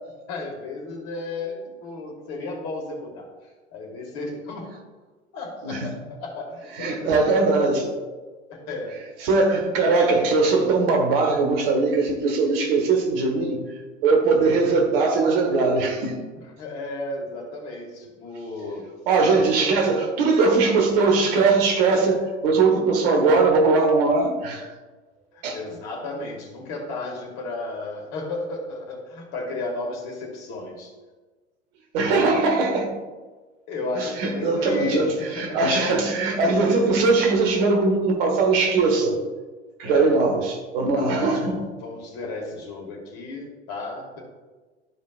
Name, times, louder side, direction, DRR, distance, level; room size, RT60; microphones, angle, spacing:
voice 1, 0.3-3.3 3.7-4.7 5.3-7.1 8.5-9.0 16.6-18.9 25.3-30.9 33.7-35.0 35.4-36.0 39.8-40.2 40.9-44.2, left 2 dB, 45° left, 0 dB, 2.0 m, -33 dB
voice 2, 6.7-8.0 8.6-8.7 9.2-16.2 19.1-24.7 25.4-25.6 31.9-32.9 33.9-39.2 39.8-41.6, right 3 dB, 50° right, 2 dB, 1.4 m, -20 dB
12.5 x 5.1 x 2.5 m, 1.3 s
figure-of-eight pair, 80°, 36 cm